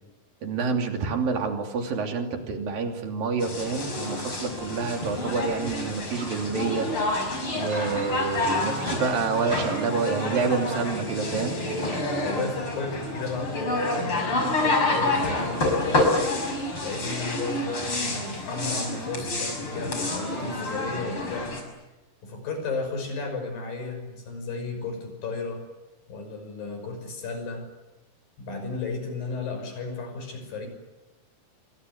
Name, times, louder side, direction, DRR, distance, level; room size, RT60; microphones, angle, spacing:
voice 1, 0.4-6.9 7.5-11.6, right 4 dB, 85° right, 3 dB, 4.7 m, -28 dB
sound 1, 3.4-21.6, left 2 dB, 40° left, 6.7 m, -28 dB
Guitar, 7.7-15.7, right 4 dB, 20° right, 1.2 m, -40 dB
voice 2, 12.2-16.0 16.8-21.6 22.2-25.6 26.1-27.7 28.4-30.7, left 4 dB, 85° left, 6 dB, 7.6 m, -33 dB
28.0 x 24.0 x 8.2 m, 1.1 s
omnidirectional pair, 3.9 m